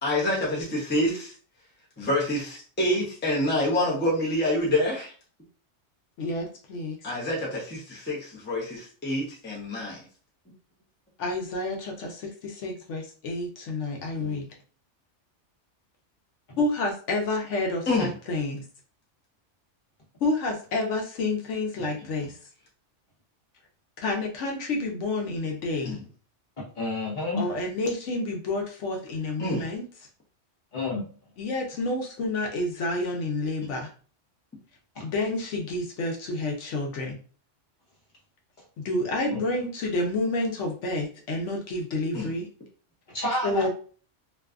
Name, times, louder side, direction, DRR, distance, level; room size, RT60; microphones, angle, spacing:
voice 1, 0.0-1.3 2.0-5.1 7.0-10.0 14.2-14.3 17.9-18.1 25.8-26.0 29.4-29.7 42.1-42.3, left 1 dB, 10° left, -4 dB, 0.6 m, -27 dB
voice 2, 6.2-7.0 11.2-14.4 16.6-18.6 20.2-22.4 24.0-26.0 27.3-29.8 31.4-33.9 35.0-37.2 38.8-42.5 43.4-43.7, left 2 dB, 75° left, 1 dB, 1.0 m, -29 dB
voice 3, 26.6-27.4 30.7-31.1 34.9-35.0 39.3-39.4 43.1-43.7, left 2 dB, 40° left, -4 dB, 1.1 m, -29 dB
2.6 x 2.3 x 2.4 m, 0.40 s
omnidirectional pair, 1.2 m